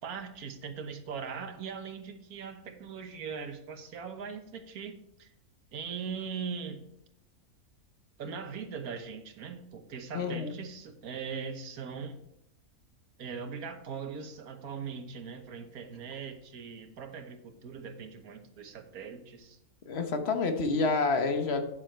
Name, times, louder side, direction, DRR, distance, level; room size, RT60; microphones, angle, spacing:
voice 1, 0.0-5.3 5.7-6.8 8.2-12.2 13.2-19.6, right 6 dB, 85° right, 7 dB, 1.5 m, -40 dB
voice 2, 10.1-10.5 19.9-21.6, left 4 dB, 50° left, 7 dB, 1.2 m, -28 dB
8.7 x 7.5 x 4.4 m, 0.79 s
omnidirectional pair, 1.5 m